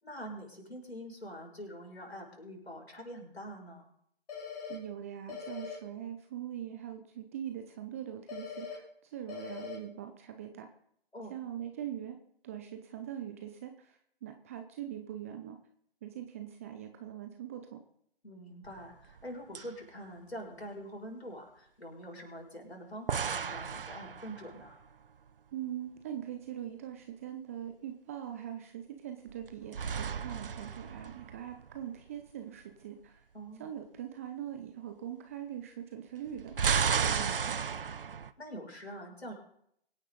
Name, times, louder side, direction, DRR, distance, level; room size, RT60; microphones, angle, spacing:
voice 1, 0.0-3.9 11.1-11.3 18.2-24.8 33.3-33.7 38.4-39.3, equal, 85° left, 0 dB, 6.7 m, -45 dB
sound 1, 4.3-4.8 5.3-5.8 8.3-8.8 9.3-9.8, left 6 dB, 40° left, 4.3 m, -41 dB
voice 2, 4.7-10.7 11.3-12.2 12.4-15.6 16.0-17.8 25.5-33.2 33.6-37.7, right 10 dB, 15° right, 6 dB, 0.6 m, -42 dB
sound 2, 18.7-19.3 19.5-19.7 23.1-24.8 29.3-31.8 36.3-38.3, right 6 dB, 60° right, 0.9 m, -33 dB
24.5 x 9.8 x 4.0 m, 0.69 s
figure-of-eight pair, 140°, 31 cm